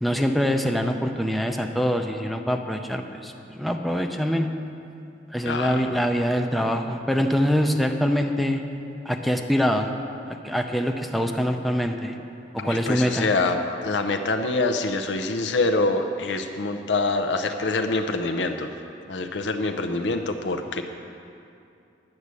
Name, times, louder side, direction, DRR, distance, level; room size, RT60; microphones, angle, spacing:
voice 1, 0.0-4.5 5.3-8.6 9.1-9.9 10.4-12.2 12.5-13.3, equal, ahead, 4 dB, 0.5 m, -24 dB
voice 2, 5.4-5.9 12.6-18.7 19.1-20.8, left 3 dB, 75° left, 6 dB, 0.6 m, -25 dB
10.5 x 6.3 x 8.2 m, 2.6 s
head